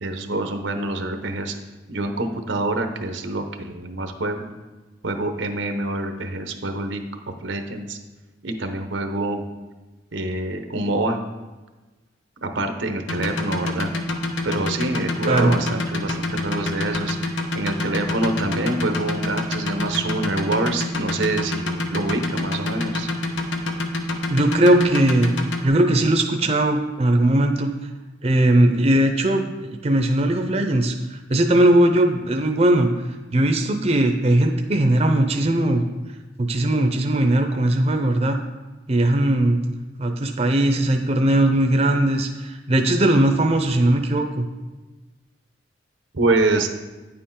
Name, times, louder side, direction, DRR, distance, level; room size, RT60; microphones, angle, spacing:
voice 1, 0.0-1.5 1.9-4.5 5.0-7.0 7.4-8.0 8.4-9.4 10.1-11.2 12.4-13.9 14.4-23.1 46.1-46.7, right 2 dB, 90° right, 6 dB, 0.9 m, -26 dB
sound 1, 13.1-25.7, left 2 dB, 90° left, 1.0 m, -26 dB
voice 2, 24.3-25.3 25.6-27.7 28.2-32.9 33.3-35.8 36.4-38.4 38.9-39.6 40.0-44.5, right 1 dB, 35° right, 5 dB, 0.6 m, -19 dB
9.6 x 6.9 x 3.8 m, 1.2 s
head